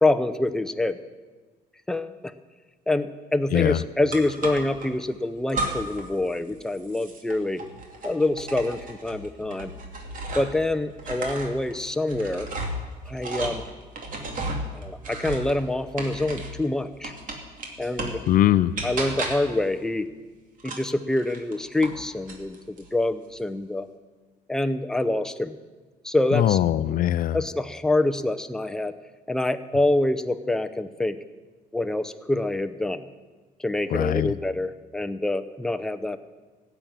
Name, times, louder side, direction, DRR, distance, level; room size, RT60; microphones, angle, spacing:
voice 1, 0.0-1.0 1.9-2.3 2.9-7.6 8.0-9.7 10.3-12.5 13.1-13.6 14.7-17.1 17.8-18.2 18.8-20.1 20.6-23.9 24.5-25.6 26.0-26.6 27.3-28.9 29.3-31.2 31.7-33.0 33.6-36.2, left 2 dB, 5° left, 9 dB, 0.7 m, -26 dB
sound 1, 4.1-4.9 5.5-6.1 6.4-10.6 11.0-16.6 17.0-18.3 18.8-19.6 20.6-22.0 22.3-22.9, right 2 dB, 50° right, 2.6 m, -34 dB
voice 2, 18.3-18.7 26.3-27.4 33.9-34.3, left 12 dB, 55° left, 15 dB, 0.5 m, -21 dB
16.0 x 7.0 x 8.9 m, 1.3 s
cardioid pair, 110°, 17 cm